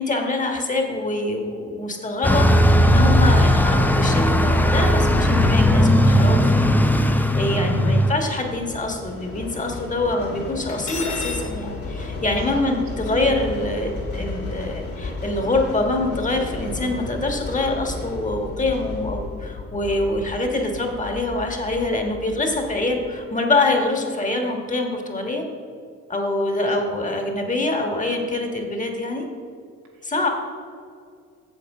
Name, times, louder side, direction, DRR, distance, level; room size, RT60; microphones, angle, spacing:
voice 1, 0.0-25.4 26.1-29.2 30.0-30.3, left 2 dB, 25° left, 3 dB, 1.5 m, -25 dB
Bus, 2.2-8.1, equal, 5° left, 0.6 m, -17 dB
sound 1, 7.1-23.1, left 2 dB, 50° left, 2.3 m, -34 dB
voice 2, 7.5-7.9 12.3-12.6 26.7-26.8, right 3 dB, 90° right, -2 dB, 2.1 m, -33 dB
Cutlery silverware, 10.7-11.5, left 4 dB, 70° left, 2.1 m, -31 dB
8.0 x 7.0 x 4.9 m, 2.2 s
cardioid pair, 90°, 30 cm